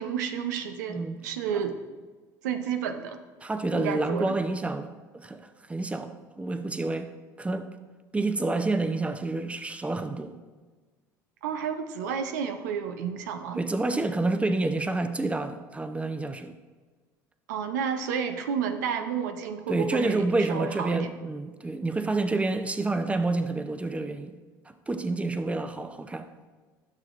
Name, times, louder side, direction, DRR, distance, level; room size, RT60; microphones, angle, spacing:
voice 1, 0.0-1.8 2.4-3.2 3.7-4.4 11.4-13.6 17.5-21.1, right 7 dB, 90° right, 0.6 m, -31 dB
voice 2, 3.4-7.1 7.4-7.7 8.1-10.3 13.6-16.6 19.7-24.3 24.9-26.3, right 2 dB, 15° right, 0.6 m, -28 dB
13.0 x 6.4 x 2.5 m
hypercardioid pair, 75°, 9 cm